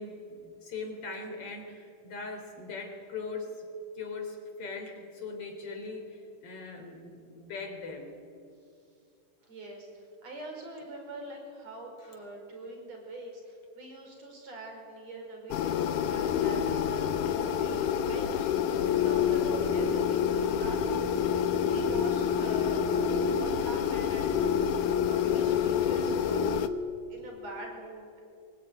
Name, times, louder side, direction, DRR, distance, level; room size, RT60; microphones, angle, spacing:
voice 1, 0.0-3.7 3.9-8.1, left 3 dB, 45° left, 4 dB, 4.3 m, -40 dB
voice 2, 9.4-9.9 10.2-22.8 23.1-26.6 27.1-28.2, right 2 dB, 50° right, 2 dB, 6.0 m, -44 dB
sound 1, 15.5-26.7, left 8 dB, 70° left, 2.3 m, -27 dB
24.0 x 20.5 x 9.4 m, 2.4 s
omnidirectional pair, 3.9 m